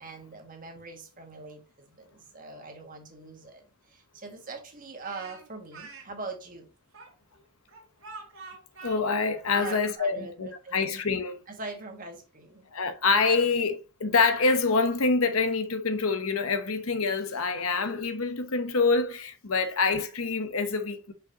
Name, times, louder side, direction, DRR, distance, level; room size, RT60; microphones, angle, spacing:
voice 1, 0.0-6.7 9.5-10.9 11.5-12.7, right 3 dB, 40° right, 1.6 m, -42 dB
Speech, 5.0-6.1 6.9-9.9, right 4 dB, 70° right, 2.2 m, -45 dB
voice 2, 8.8-11.3 12.7-21.1, left 4 dB, 85° left, 1.0 m, -26 dB
6.2 x 5.5 x 2.9 m
head